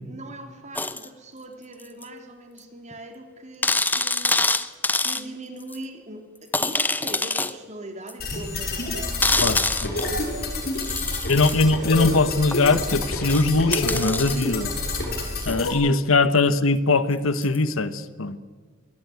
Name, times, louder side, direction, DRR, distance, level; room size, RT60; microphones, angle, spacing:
voice 1, 0.1-4.6 5.0-11.5 16.2-16.3, right 1 dB, 35° right, 5 dB, 3.5 m, -41 dB
sound 1, 0.8-1.1 2.0-2.1 2.6-2.7 2.9-3.0 3.6-5.2 5.7-5.8 6.5-7.5 8.1-8.2 9.2-10.2 10.7-11.6 12.5-15.6 17.4-17.6, left 3 dB, 10° left, 0.8 m, -26 dB
sound 2, 8.2-15.7, left 2 dB, 50° left, 7.0 m, -28 dB
voice 2, 9.4-9.9 11.3-14.7 15.5-18.4, left 3 dB, 70° left, 14 dB, 1.1 m, -21 dB
23.0 x 19.5 x 9.5 m, 1.5 s
head